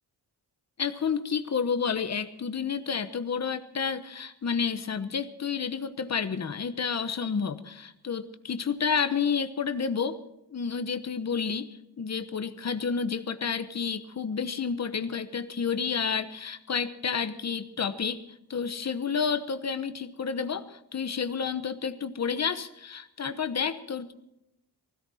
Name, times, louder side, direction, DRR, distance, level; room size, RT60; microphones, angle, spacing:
voice 1, 0.8-10.2 10.5-11.7 12.0-18.2 18.5-24.1, left 6 dB, 40° left, 10 dB, 1.1 m, -30 dB
20.0 x 16.5 x 4.3 m, 0.85 s
wide cardioid pair, 170°, 40 cm